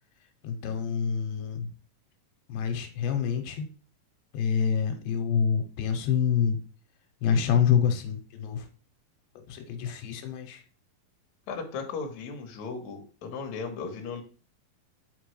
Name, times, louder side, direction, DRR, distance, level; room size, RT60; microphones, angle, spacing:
voice 1, 0.4-1.7 2.5-3.7 4.3-6.6 7.2-8.7 9.5-10.6, left 7 dB, 90° left, 6 dB, 2.6 m, -27 dB
voice 2, 11.5-14.2, left 5 dB, 65° left, 3 dB, 2.1 m, -36 dB
6.7 x 5.2 x 3.1 m, 0.37 s
omnidirectional pair, 4.1 m